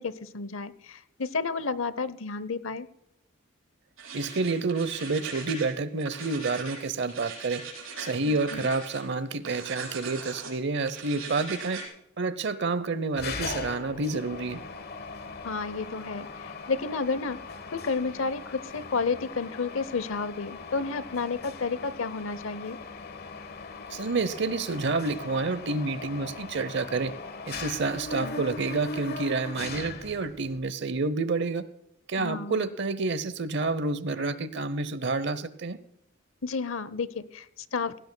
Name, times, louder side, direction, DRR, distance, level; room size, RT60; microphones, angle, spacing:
voice 1, 0.0-2.9 8.2-8.7 15.4-17.4 17.7-22.8 28.2-28.4 32.2-32.7 36.4-38.0, left 4 dB, 80° left, 16 dB, 0.8 m, -31 dB
sound 1, 4.0-5.7 6.0-9.0 9.4-10.5 10.9-11.9, right 4 dB, 85° right, 5.0 m, -40 dB
voice 2, 4.1-7.6 8.0-11.8 12.2-14.6 23.9-27.1 27.5-31.6 32.1-35.8, right 3 dB, 60° right, 16 dB, 0.8 m, -29 dB
Mechanisms, 13.2-30.6, left 4 dB, 50° left, 1.2 m, -40 dB
18.0 x 16.5 x 2.3 m, 0.82 s
head